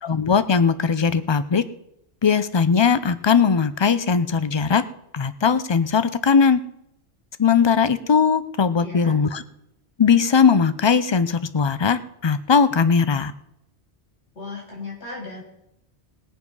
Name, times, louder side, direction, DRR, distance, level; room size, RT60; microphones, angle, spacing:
voice 1, 0.0-1.6 2.2-4.8 5.1-6.6 7.4-9.4 10.0-13.3, left 6 dB, 35° left, 13 dB, 0.5 m, -19 dB
voice 2, 8.8-9.2 14.3-15.4, left 3 dB, 75° left, -4 dB, 4.0 m, -36 dB
20.0 x 7.4 x 5.5 m, 0.82 s
omnidirectional pair, 1.1 m